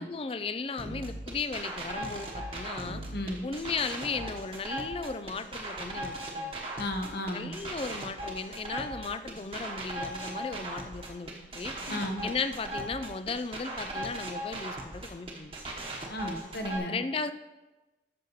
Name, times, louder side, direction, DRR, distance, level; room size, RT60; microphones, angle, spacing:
voice 1, 0.0-3.0 3.4-6.5 7.3-11.7 12.2-15.5 16.9-17.3, left 4 dB, 30° left, 12 dB, 0.4 m, -36 dB
sound 1, 0.8-16.8, right 1 dB, 30° right, 1.1 m, -38 dB
voice 2, 3.1-3.5 6.8-7.5 11.9-12.2 16.1-17.0, left 1 dB, 60° left, 4 dB, 1.1 m, -34 dB
13.5 x 6.2 x 3.1 m, 1.1 s
head